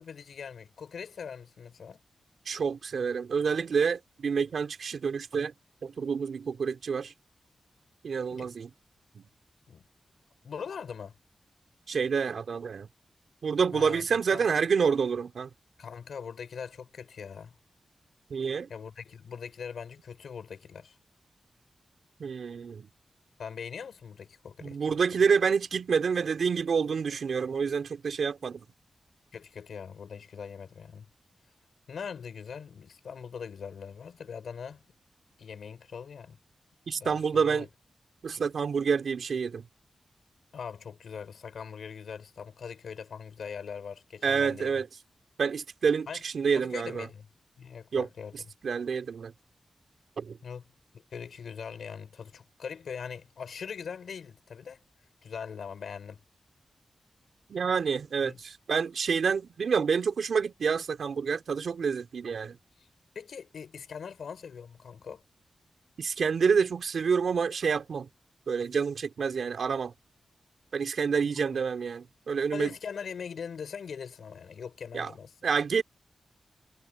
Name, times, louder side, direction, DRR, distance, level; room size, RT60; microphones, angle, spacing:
voice 1, 0.0-2.0 8.3-8.5 9.7-9.8 10.4-11.2 13.7-14.0 14.3-14.4 15.8-17.5 18.7-21.0 23.4-25.0 29.3-31.1 31.9-34.8 35.4-36.4 36.9-37.7 40.5-44.7 46.1-46.2 46.5-47.2 47.6-48.4 50.4-50.6 50.9-54.8 55.2-56.2 58.3-58.4 63.1-65.2 71.2-71.5 72.5-75.3, left 6 dB, 85° left, 5.8 m, -41 dB
voice 2, 2.5-5.5 5.8-7.1 8.0-8.7 9.1-9.2 11.9-12.9 13.4-15.5 18.3-18.7 22.2-22.9 24.6-28.7 36.9-37.7 38.2-39.6 44.2-44.9 45.4-47.1 47.9-48.1 48.6-49.3 50.2-50.4 57.5-62.6 66.0-68.1 68.5-69.9 70.7-72.7 74.9-75.1 75.4-75.8, right 6 dB, 70° right, 4.2 m, -28 dB
wide cardioid pair, 175°, 0 cm